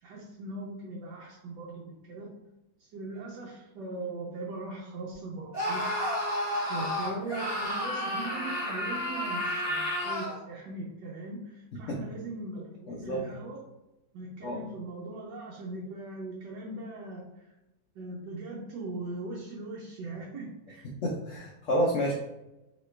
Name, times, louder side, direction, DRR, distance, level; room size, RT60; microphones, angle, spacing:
voice 1, 0.0-2.3 2.8-5.9 6.7-13.6 14.1-17.4 17.9-20.9, right 2 dB, 75° right, -3 dB, 1.3 m, -40 dB
Screaming, 5.5-10.4, left 1 dB, 10° right, 1.0 m, -31 dB
voice 2, 12.9-13.2 14.4-14.6 21.0-22.1, equal, 85° left, -2 dB, 0.6 m, -29 dB
3.0 x 3.0 x 3.2 m, 0.96 s
omnidirectional pair, 2.0 m